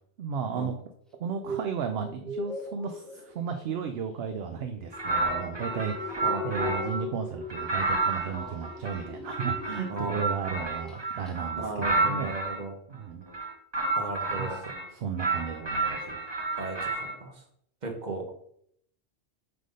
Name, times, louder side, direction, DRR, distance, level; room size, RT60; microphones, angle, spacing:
voice 1, 0.2-0.7 1.2-12.4 12.9-13.2 13.8-14.0 14.4-16.3, right 6 dB, 65° right, 6 dB, 0.8 m, -34 dB
sound 1, 1.1-10.4 10.7-11.0 11.3-11.4, left 2 dB, ahead, 0.7 m, -40 dB
sound 2, 4.9-7.0 7.5-12.6 13.3-14.9 15.2-17.2, right 3 dB, 25° right, 0.9 m, -30 dB
voice 2, 9.9-10.4 11.6-12.7 14.0-14.6 16.6-17.4 17.8-18.3, right 3 dB, 40° right, 3 dB, 1.3 m, -35 dB
7.7 x 3.5 x 5.2 m, 0.69 s
omnidirectional pair, 1.2 m